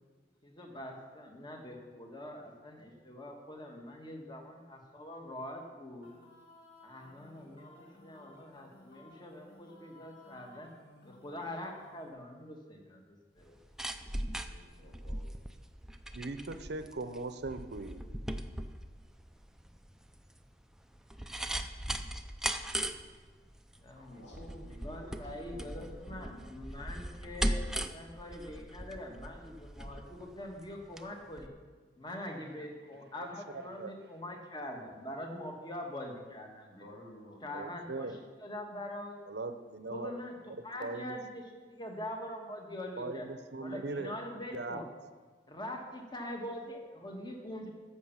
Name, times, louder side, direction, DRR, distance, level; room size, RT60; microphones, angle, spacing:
voice 1, 0.4-4.4 5.0-6.1 6.8-10.7 11.0-13.6 23.8-24.2 24.8-31.5 32.0-36.8 37.4-38.1 38.4-39.1 39.9-40.3 40.6-43.3 43.6-44.8 45.5-47.7, left 1 dB, 25° left, 2 dB, 1.5 m, -43 dB
sound 1, 6.0-12.1, left 1 dB, 65° left, 2.2 m, -57 dB
sound 2, 13.4-31.1 31.4-31.5, right 1 dB, 5° right, 0.5 m, -39 dB
voice 2, 14.5-15.3 23.9-26.5 36.7-37.7, equal, 90° left, -3 dB, 3.1 m, -53 dB
voice 3, 16.2-18.7 32.1-32.2 32.5-32.7 33.2-33.3 33.7-34.0 37.5-38.2 39.3-40.1 40.6-41.2 43.0-44.2 44.5-44.8, right 3 dB, 65° right, 10 dB, 0.7 m, -40 dB
10.5 x 7.1 x 7.2 m, 1.4 s
head